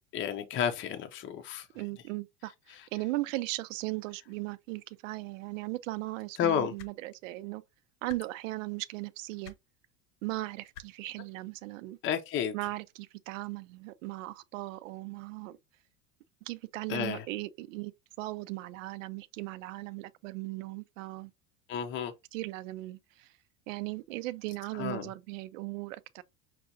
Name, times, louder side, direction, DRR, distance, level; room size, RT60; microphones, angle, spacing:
voice 1, 0.1-1.7 2.7-2.8 6.4-6.7 12.0-12.5 16.9-17.2 21.7-22.1 24.7-25.1, left 8 dB, 30° left, 0.6 m, -31 dB
voice 2, 1.7-7.6 8.0-9.5 10.2-12.0 12.5-15.6 16.4-17.9 18.2-21.3 22.3-23.3 23.7-26.2, right 19 dB, 90° right, 0.5 m, -38 dB
sound 1, 6.8-6.9 8.1-8.2 9.4-9.6 10.7-10.9 12.1-12.2, left 7 dB, 65° left, 0.9 m, -47 dB
5.9 x 2.4 x 2.6 m
supercardioid pair, 130°, 38 cm